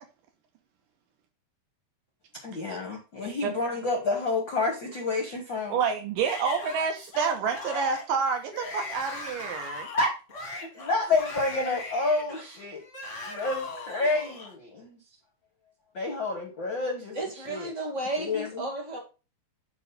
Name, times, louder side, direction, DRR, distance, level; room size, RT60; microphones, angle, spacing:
voice 1, 2.4-5.8 7.7-7.8 9.9-12.8 13.3-15.0 15.9-17.7 18.2-18.6, left 3 dB, 70° left, 1.1 m, -29 dB
voice 2, 5.7-9.9, right 6 dB, 75° right, 2.6 m, -28 dB
Yell / Screaming, 6.2-14.5, left 3 dB, 45° left, 0.9 m, -39 dB
voice 3, 17.1-19.0, right 1 dB, 25° right, 1.7 m, -33 dB
8.4 x 3.2 x 5.4 m
omnidirectional pair, 4.2 m